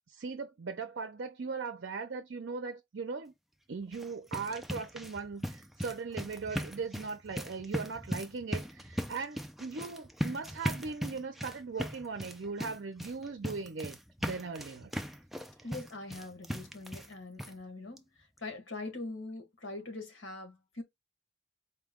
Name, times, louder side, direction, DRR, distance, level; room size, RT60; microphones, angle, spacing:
voice 1, 0.1-3.3 3.7-14.9, right 4 dB, 60° right, 0.5 m, -39 dB
sound 1, 3.8-17.1 17.4-17.5 18.0-18.1 18.4-18.5, equal, ahead, 0.3 m, -39 dB
voice 2, 15.6-18.0 18.4-20.8, left 2 dB, 80° left, 1.4 m, -42 dB
4.4 x 2.2 x 3.5 m
head